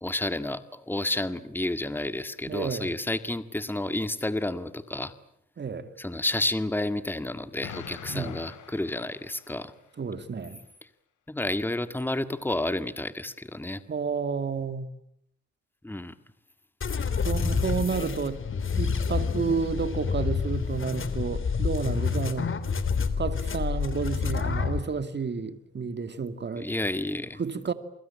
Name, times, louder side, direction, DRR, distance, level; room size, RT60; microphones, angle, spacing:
voice 1, 0.0-5.1 6.0-9.7 11.3-13.8 15.8-16.1 26.6-27.4, left 1 dB, 5° left, 1.9 m, -30 dB
voice 2, 2.5-2.9 5.6-5.9 8.1-8.4 10.0-10.6 13.9-14.9 17.2-18.4 18.8-22.5 23.2-26.7 27.4-27.7, right 5 dB, 35° right, 2.5 m, -31 dB
Explosion, 7.6-9.8, left 9 dB, 80° left, 4.5 m, -43 dB
sound 1, 16.8-24.8, left 5 dB, 40° left, 3.3 m, -28 dB
29.0 x 23.0 x 8.8 m
cardioid pair, 90°, 30 cm